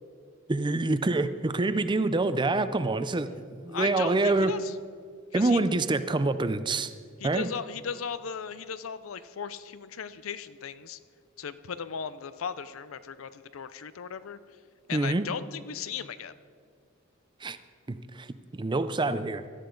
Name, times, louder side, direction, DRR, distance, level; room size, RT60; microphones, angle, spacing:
voice 1, 0.5-4.5 5.3-6.9 7.2-7.5 14.9-15.2 17.4-17.6 17.9-18.3 18.5-19.4, right 2 dB, 25° right, 12 dB, 0.5 m, -26 dB
voice 2, 3.7-4.7 5.3-5.6 7.2-11.0 11.4-14.4 14.9-16.3, left 7 dB, 80° left, 14 dB, 0.6 m, -37 dB
17.0 x 12.5 x 3.9 m, 2.1 s
head